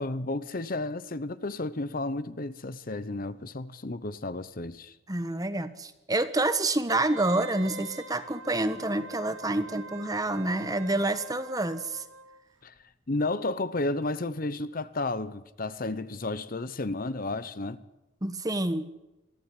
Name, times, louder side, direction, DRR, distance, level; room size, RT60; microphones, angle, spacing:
voice 1, 0.0-5.0 12.6-12.7 13.1-17.8, left 2 dB, 45° left, 0.9 m, -32 dB
voice 2, 5.1-12.0 18.2-18.9, right 2 dB, 20° right, 1.2 m, -28 dB
Wind instrument woodwind instrument, 6.9-12.4 12.8-12.9, right 3 dB, 65° right, 1.6 m, -45 dB
23.5 x 15.0 x 9.8 m
head